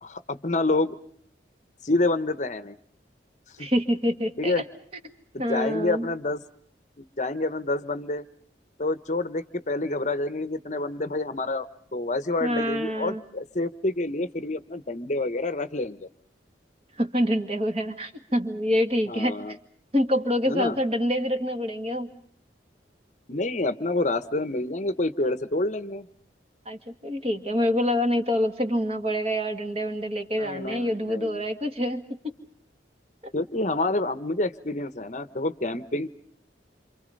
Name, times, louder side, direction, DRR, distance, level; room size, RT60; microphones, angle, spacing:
voice 1, 0.0-0.9 1.8-2.7 3.6-3.7 4.4-4.6 5.3-6.4 7.0-8.2 8.8-16.1 19.1-19.5 20.5-20.8 23.3-26.1 30.4-31.4 33.3-36.1, left 2 dB, 40° left, 12 dB, 0.9 m, -28 dB
voice 2, 3.6-4.7 5.4-6.1 12.4-13.2 17.0-19.6 19.9-22.1 26.7-32.3 33.2-33.3, equal, 35° right, 6 dB, 2.1 m, -26 dB
28.0 x 27.0 x 5.3 m, 0.64 s
head